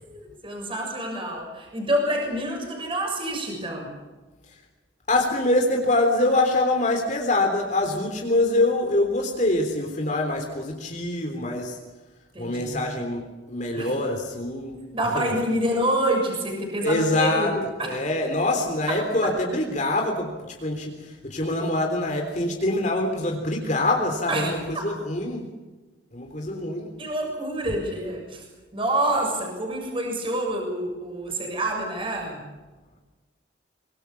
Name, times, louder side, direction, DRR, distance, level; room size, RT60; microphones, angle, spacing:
voice 1, 0.0-3.9 12.3-12.8 13.7-13.9 14.9-17.9 18.9-19.0 24.3-24.8 27.0-28.4 28.7-32.4, right 1 dB, 25° right, 1 dB, 6.7 m, -27 dB
voice 2, 5.1-11.8 12.4-13.2 13.5-14.8 15.1-15.3 16.8-17.6 17.8-25.5 26.1-27.0, left 2 dB, 40° left, 2 dB, 3.5 m, -24 dB
24.5 x 23.5 x 7.2 m, 1.2 s
head